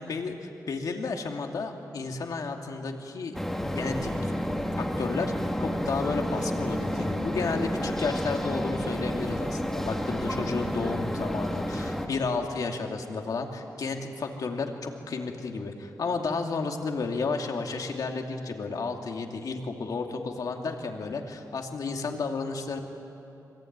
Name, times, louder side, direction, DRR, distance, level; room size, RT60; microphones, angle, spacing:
voice 1, 0.0-3.4 3.8-4.3 4.8-5.3 5.6-22.8, left 4 dB, 65° left, 3 dB, 2.5 m, -32 dB
sound 1, 3.3-12.1, equal, 5° left, 1.9 m, -30 dB
25.5 x 24.0 x 9.6 m, 2.8 s
wide cardioid pair, 160°, 7 cm